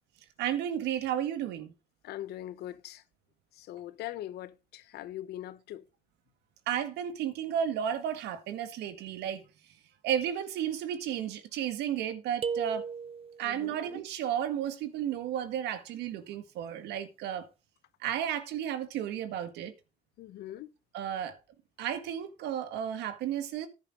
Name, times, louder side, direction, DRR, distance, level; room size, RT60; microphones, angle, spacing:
voice 1, 0.4-1.7 6.7-9.4 10.0-12.8 13.4-17.5 18.0-19.7 20.9-21.4 21.8-23.7, right 9 dB, 85° right, 1.9 m, -33 dB
voice 2, 2.0-3.0 3.6-5.8 13.4-13.8 20.2-20.7, left 13 dB, 75° left, 1.0 m, -41 dB
sound 1, 12.4-13.5, right 6 dB, 35° right, 0.7 m, -35 dB
10.5 x 10.5 x 3.8 m
cardioid pair, 110°, 17 cm